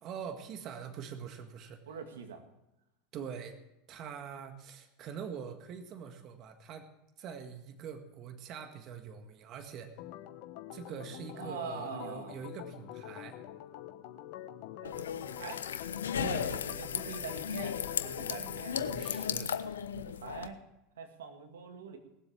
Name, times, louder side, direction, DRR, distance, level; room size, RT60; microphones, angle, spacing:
voice 1, 0.0-1.8 3.1-3.6 3.9-6.9 7.2-9.9 10.7-13.4 16.2-16.6 18.7-19.5, right 7 dB, 50° right, 7 dB, 1.8 m, -44 dB
voice 2, 1.9-2.4 11.3-12.4 14.8-15.6 16.7-18.8 19.8-20.6 21.0-22.0, right 5 dB, 85° right, 5 dB, 2.0 m, -44 dB
Organ, 10.0-19.3, left 13 dB, 60° left, 1.1 m, -46 dB
sound 1, 14.8-20.5, left 8 dB, 90° left, 0.8 m, -36 dB
19.0 x 7.8 x 7.2 m, 0.89 s
hypercardioid pair, 90°, 0 cm